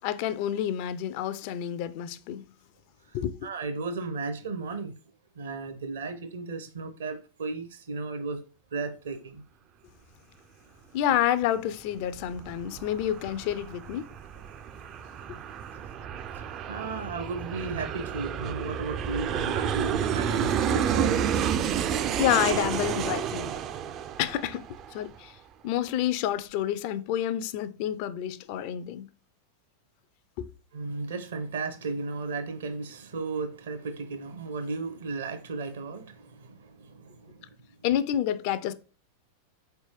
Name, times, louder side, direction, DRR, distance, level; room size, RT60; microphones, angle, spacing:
voice 1, 0.0-2.4 3.1-3.3 10.9-14.1 22.2-23.5 24.2-24.6 24.9-25.4 25.6-29.1 30.4-30.5 37.8-38.7, left 11 dB, 45° left, 0.4 m, -28 dB
voice 2, 3.1-5.0 5.3-8.4 8.7-9.4 15.7-15.8 16.3-21.5 30.7-37.8, right 3 dB, 65° right, 0.8 m, -35 dB
Aircraft, 12.0-25.2, right 8 dB, 35° right, 0.3 m, -30 dB
4.2 x 3.3 x 3.0 m
figure-of-eight pair, 90°, 0 cm